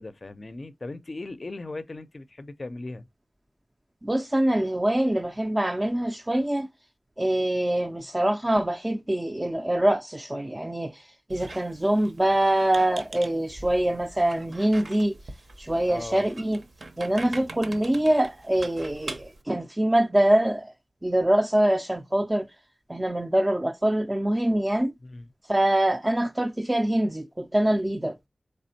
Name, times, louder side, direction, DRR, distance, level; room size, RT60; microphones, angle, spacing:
voice 1, 0.0-3.1 15.9-16.3 25.0-25.3, left 2 dB, 45° left, 0.4 m, -38 dB
voice 2, 4.0-6.7 7.2-15.2 15.6-16.6 17.0-20.7 21.0-22.5 22.9-24.9 25.4-28.2, right 1 dB, 20° right, 0.3 m, -24 dB
Squeak, 11.3-19.4, right 2 dB, 65° right, 0.7 m, -43 dB
4.1 x 3.3 x 2.7 m
wide cardioid pair, 90°, 0 cm